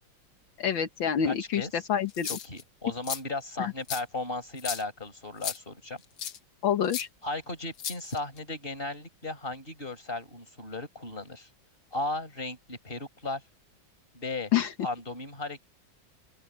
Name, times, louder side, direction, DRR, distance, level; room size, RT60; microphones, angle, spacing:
voice 1, 0.6-2.3 3.6-3.7 6.6-7.1 14.5-14.7, left 9 dB, 75° left, 2.0 m, -27 dB
voice 2, 1.2-1.7 2.2-6.0 7.2-11.5 11.9-13.4 14.1-14.5 14.8-15.6, left 2 dB, 25° left, 5.1 m, -36 dB
sound 1, 2.1-2.6 3.0-3.2 3.9-4.0 4.6-4.8 5.4-5.6 6.2-6.4 6.9-7.0 7.8-8.4, left 9 dB, 60° left, 1.6 m, -34 dB
open air
omnidirectional pair, 2.1 m